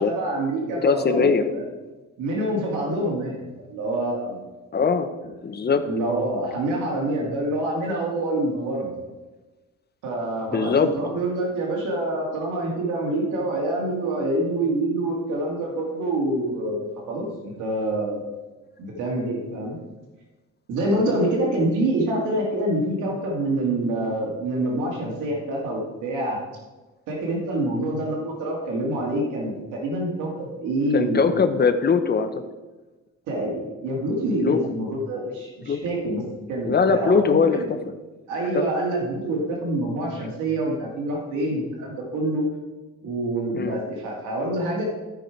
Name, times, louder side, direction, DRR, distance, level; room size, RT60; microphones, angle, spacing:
voice 1, 0.0-1.6 2.2-4.4 5.8-8.9 10.0-18.2 18.8-19.8 20.7-26.4 27.1-31.3 33.3-36.2 36.5-37.7 38.3-42.4 43.0-44.8, right 1 dB, 90° right, -2 dB, 2.3 m, -26 dB
voice 2, 0.8-1.5 4.7-5.1 5.4-5.8 10.5-10.9 30.9-32.4 34.4-34.6 35.7-35.8 36.6-37.8 38.5-38.6 43.5-43.8, left 5 dB, 35° left, 8 dB, 0.9 m, -21 dB
14.5 x 4.9 x 4.6 m, 1.2 s
cardioid pair, 90°, 30 cm